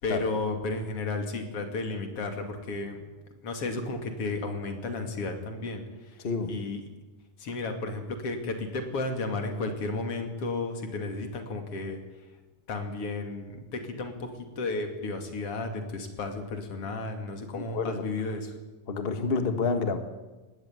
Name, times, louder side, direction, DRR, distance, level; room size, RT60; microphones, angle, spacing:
voice 1, 0.0-3.0 3.4-6.2 6.5-6.8 7.4-12.0 12.7-14.3 14.6-18.6, left 3 dB, 45° left, 6 dB, 3.2 m, -33 dB
voice 2, 6.2-6.6 17.5-18.0 18.9-20.0, left 4 dB, 70° left, 8 dB, 0.5 m, -29 dB
19.0 x 16.5 x 9.6 m, 1.2 s
omnidirectional pair, 3.9 m